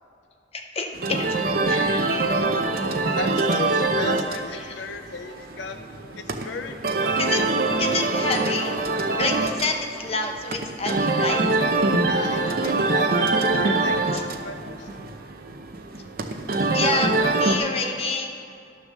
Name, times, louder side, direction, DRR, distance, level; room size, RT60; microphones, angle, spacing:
voice 1, 0.5-1.4 1.7-2.0 4.6-4.8 7.2-7.4 7.8-8.8 9.2-11.4 14.1-14.2 16.7-18.3, left 3 dB, 30° left, 3 dB, 0.9 m, -28 dB
sound 1, 0.9-17.6, right 3 dB, 50° right, 0.7 m, -24 dB
voice 2, 3.2-5.8 6.2-7.5 12.0-14.9, left 4 dB, 70° left, 7 dB, 0.5 m, -35 dB
11.0 x 6.7 x 6.4 m, 2.5 s
head